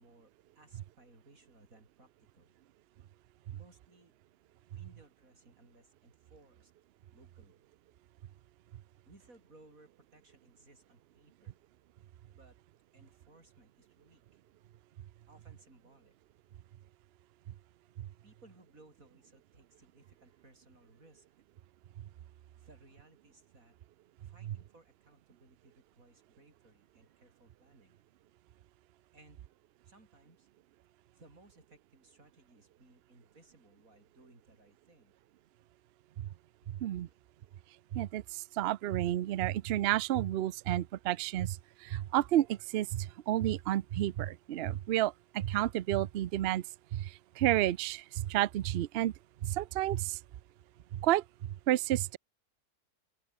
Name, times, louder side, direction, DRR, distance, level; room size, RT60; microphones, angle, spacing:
voice 1, 0.0-2.5 3.5-4.1 4.7-6.7 7.1-7.6 9.0-11.6 12.3-12.6 12.9-14.4 15.3-16.1 18.2-21.4 22.6-23.8 24.2-28.0 29.1-29.4 29.8-30.5 31.1-35.2 36.6-36.8 37.0-37.2, right 2 dB, 55° right, 6.5 m, -62 dB
voice 2, 37.9-46.6 46.9-49.1 49.4-50.2 50.9-51.2 51.7-52.2, right 13 dB, 85° right, 0.5 m, -31 dB
open air
omnidirectional pair, 1.7 m